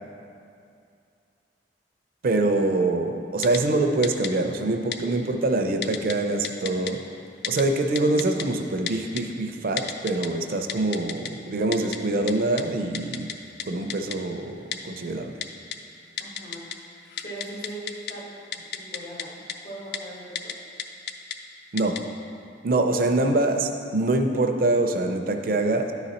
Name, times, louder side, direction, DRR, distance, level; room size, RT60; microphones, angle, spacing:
voice 1, 2.2-7.0 7.5-13.3 13.7-15.4 21.7-22.0 22.6-25.9, right 2 dB, 55° right, 5 dB, 0.5 m, -24 dB
Typing, 3.4-3.6 4.0-4.3 4.9-5.0 5.8-6.1 6.4-6.9 7.4-7.6 8.0-8.4 8.9-9.2 9.8-10.3 10.7-11.3 11.7-12.0 12.3-12.4 12.6-12.7 12.9-13.3 13.6-13.7 13.9-14.2 14.7-14.8 15.4-15.8 16.2-16.8 17.1-18.1 18.5-19.2 19.5-19.6 19.9-20.0 20.4-20.5 20.8-21.4 21.8-22.0, left 8 dB, 65° left, 0.4 m, -31 dB
voice 2, 16.2-16.7 17.2-20.6 23.0-23.5, right 1 dB, 80° left, -4 dB, 1.7 m, -40 dB
9.8 x 4.0 x 4.2 m, 2.4 s
head